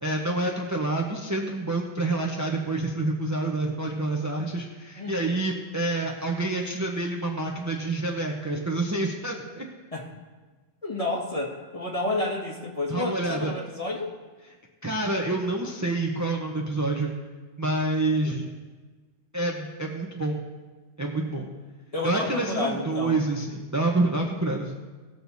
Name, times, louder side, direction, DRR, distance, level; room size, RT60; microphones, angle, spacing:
voice 1, 0.0-9.6 12.9-13.5 14.8-17.1 17.6-18.5 19.3-20.4 21.0-21.5 22.0-24.7, right 2 dB, 15° right, 0 dB, 0.8 m, -27 dB
voice 2, 5.0-5.4 9.9-10.1 10.8-14.1 21.9-23.3, left 2 dB, 30° left, -2 dB, 1.9 m, -30 dB
18.5 x 6.6 x 4.1 m, 1.3 s
omnidirectional pair, 1.2 m